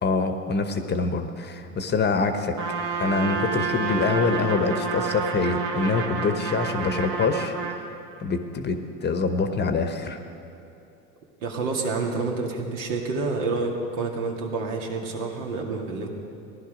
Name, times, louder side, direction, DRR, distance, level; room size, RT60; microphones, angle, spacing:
voice 1, 0.0-2.6 3.0-7.5 8.2-10.2, left 4 dB, 25° left, 7 dB, 1.0 m, -25 dB
Trumpet, 2.6-7.8, right 5 dB, 50° right, 1.8 m, -29 dB
voice 2, 11.4-16.1, right 3 dB, 70° right, 0 dB, 2.2 m, -28 dB
16.5 x 11.5 x 5.0 m, 2.8 s
hypercardioid pair, 95°, 39 cm